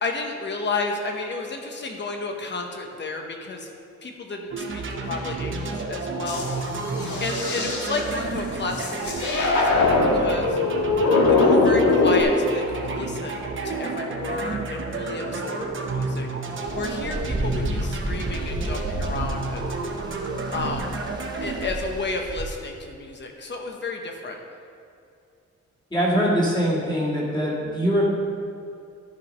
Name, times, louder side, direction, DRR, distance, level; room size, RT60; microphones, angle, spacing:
voice 1, 0.0-3.7 4.0-6.5 7.2-9.8 10.1-10.6 11.3-16.3 16.7-19.7 20.5-21.0 21.4-24.4, left 3 dB, 40° left, 2 dB, 1.0 m, -32 dB
sound 1, 4.5-21.7, right 3 dB, 45° right, 0.8 m, -31 dB
sound 2, 6.3-8.0 8.7-12.2, left 3 dB, 85° left, 1.6 m, -21 dB
sound 3, 16.6-22.4, right 1 dB, 15° right, 0.7 m, -32 dB
voice 2, 25.9-28.1, equal, 15° left, -6 dB, 2.1 m, -22 dB
12.5 x 5.0 x 5.4 m, 2.5 s
wide cardioid pair, 175°, 29 cm